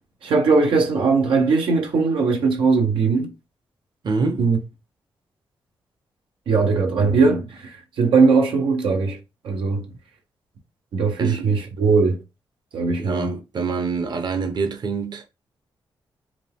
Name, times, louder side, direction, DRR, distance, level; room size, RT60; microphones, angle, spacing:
voice 1, 0.2-3.3 4.4-4.6 6.5-9.2 9.4-9.9 10.9-12.2 12.7-13.3, right 4 dB, 90° right, 0.8 m, -19 dB
voice 2, 4.0-4.4 11.2-11.5 13.0-15.2, right 4 dB, 55° right, 0.9 m, -26 dB
4.8 x 2.3 x 3.6 m
cardioid pair, 85°, 9 cm